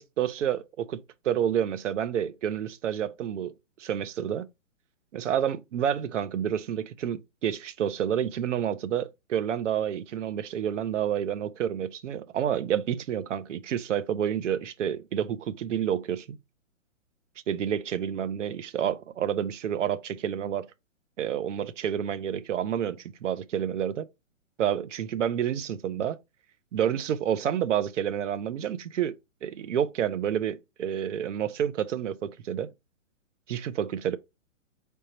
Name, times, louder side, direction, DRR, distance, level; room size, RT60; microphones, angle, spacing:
voice 1, 0.0-3.5 3.8-4.5 5.1-16.4 17.5-20.7 21.2-24.1 24.6-26.2 26.7-29.1 29.4-32.7 33.5-34.2, right 9 dB, 65° right, 0.6 m, -29 dB
4.2 x 3.5 x 2.8 m
hypercardioid pair, 165°, 40 cm